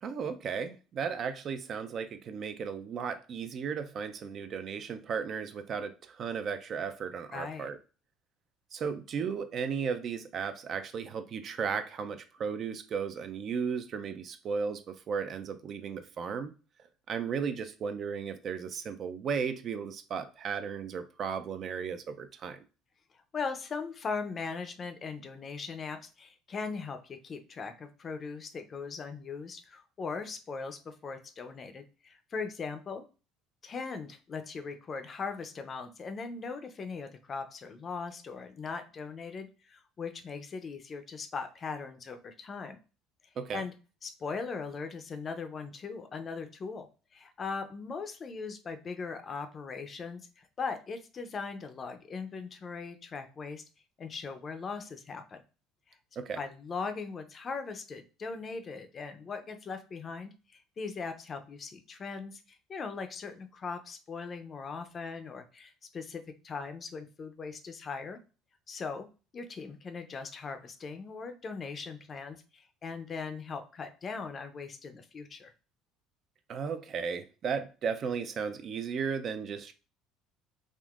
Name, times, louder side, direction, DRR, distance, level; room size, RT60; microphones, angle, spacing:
voice 1, 0.0-7.8 8.7-16.5 17.1-22.6 43.4-43.6 56.2-56.4 76.5-79.7, right 6 dB, 45° right, 9 dB, 0.4 m, -35 dB
voice 2, 7.3-7.7 23.3-33.0 33.6-42.8 43.5-43.7 44.0-46.9 47.1-53.6 54.0-55.4 56.4-68.2 68.7-69.1 69.3-75.5, left 5 dB, 35° left, 8 dB, 0.5 m, -39 dB
3.6 x 2.5 x 2.4 m, 0.34 s
supercardioid pair, 100°, 0 cm